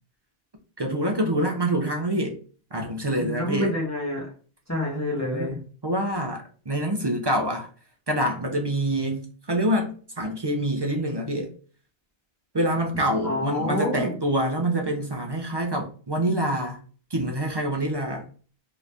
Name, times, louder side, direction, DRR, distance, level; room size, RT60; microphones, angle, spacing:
voice 1, 0.8-2.4 2.7-3.7 5.3-5.6 5.8-7.7 8.1-11.5 12.5-16.8 17.1-18.2, right 1 dB, 40° right, 0.4 m, -26 dB
voice 2, 3.2-4.3 4.7-5.5 13.2-14.1, left 1 dB, 15° left, 0.9 m, -27 dB
2.9 x 2.5 x 3.3 m
omnidirectional pair, 1.1 m